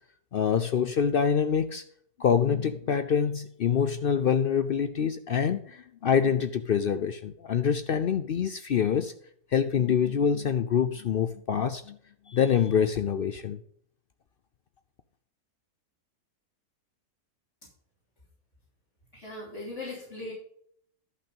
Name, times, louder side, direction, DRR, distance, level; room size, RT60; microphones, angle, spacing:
voice 1, 0.3-1.8 2.2-9.1 9.5-12.0 12.3-13.6, left 7 dB, 75° left, 0.5 m, -25 dB
voice 2, 19.1-20.3, left 2 dB, 45° left, 3.6 m, -39 dB
11.5 x 5.8 x 5.3 m
omnidirectional pair, 1.7 m